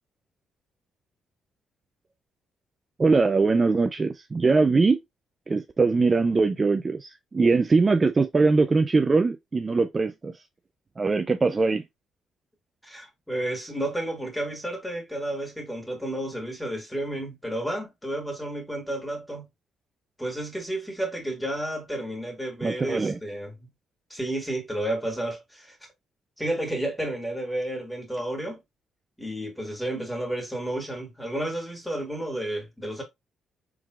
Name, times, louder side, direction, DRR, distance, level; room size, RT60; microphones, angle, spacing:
voice 1, 3.0-5.0 5.5-10.4 11.0-11.8 22.6-23.2, right 3 dB, 30° right, 0.4 m, -22 dB
voice 2, 12.8-19.5 20.2-23.7 24.1-25.8 26.4-28.6 29.2-33.0, right 1 dB, 5° left, 2.0 m, -31 dB
4.6 x 3.7 x 2.3 m
cardioid pair, 90°, 0 cm